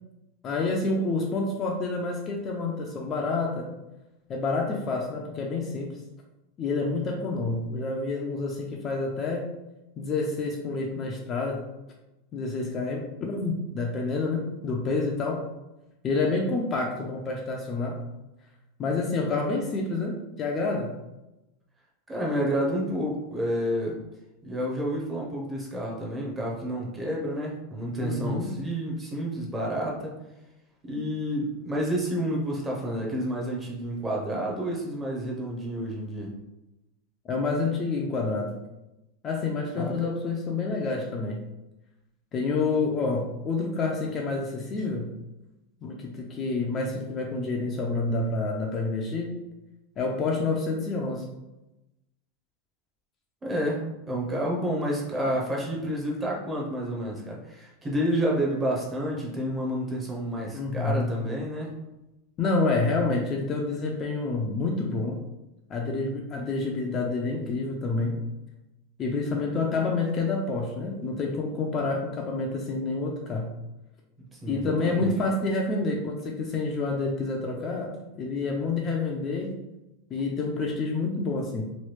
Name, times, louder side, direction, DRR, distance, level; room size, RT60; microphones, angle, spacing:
voice 1, 0.4-3.7 4.3-5.9 6.6-9.5 10.0-11.7 12.3-15.4 16.0-18.0 18.8-21.0 28.0-28.5 37.3-38.5 39.2-41.4 42.3-45.1 45.8-49.3 50.0-51.3 60.5-61.1 62.4-65.2 65.7-68.2 69.0-73.6 74.5-79.5 80.1-81.6, left 3 dB, 25° left, 0 dB, 0.4 m, -28 dB
voice 2, 22.1-24.0 24.4-30.1 30.8-36.3 39.7-39.9 53.4-53.8 54.1-61.7 74.3-75.1, equal, 15° right, -3 dB, 0.7 m, -29 dB
3.0 x 2.2 x 3.2 m, 0.95 s
supercardioid pair, 150°, 0 cm